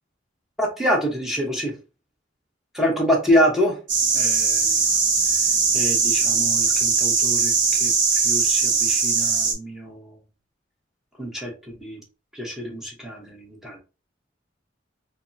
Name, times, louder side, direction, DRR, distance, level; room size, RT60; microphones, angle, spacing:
voice 1, 0.6-1.7 2.7-3.8 4.1-4.8 5.7-7.9 8.2-10.2 11.2-12.0 12.3-13.8, equal, ahead, 0.7 m, -26 dB
sound 1, 3.9-9.5, right 5 dB, 70° right, 0.7 m, -20 dB
3.4 x 2.0 x 2.5 m
head